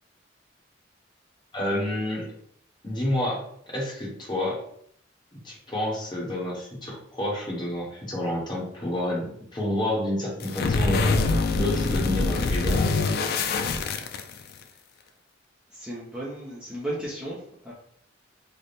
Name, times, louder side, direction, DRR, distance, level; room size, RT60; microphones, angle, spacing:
voice 1, 1.5-2.3 2.8-4.6 5.4-11.3 11.5-12.8, left 1 dB, 25° left, -3 dB, 1.0 m, -29 dB
sound 1, 10.4-14.6, left 3 dB, 55° left, 0.3 m, -24 dB
voice 2, 15.7-17.7, right 1 dB, 5° right, -7 dB, 0.6 m, -35 dB
3.3 x 2.1 x 4.0 m, 0.67 s
head